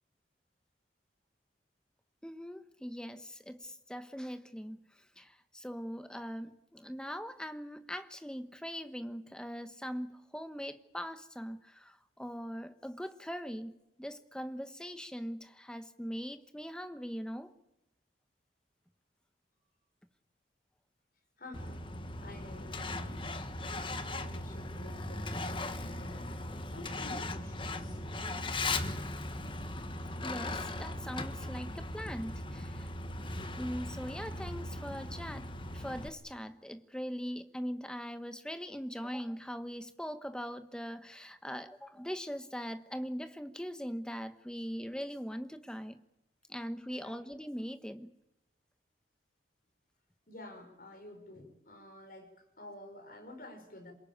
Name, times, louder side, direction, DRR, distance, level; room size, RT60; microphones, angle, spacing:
voice 1, 2.2-17.5 30.2-32.9 33.6-46.0 46.5-48.1, equal, 5° left, 1.1 m, -41 dB
voice 2, 21.4-21.9 22.2-23.3 23.6-26.3 26.7-28.0 46.9-47.2 50.3-53.9, left 1 dB, 50° left, 5.7 m, -50 dB
Truck, 21.5-36.1, left 2 dB, 25° left, 1.3 m, -38 dB
27.5 x 18.5 x 8.9 m
head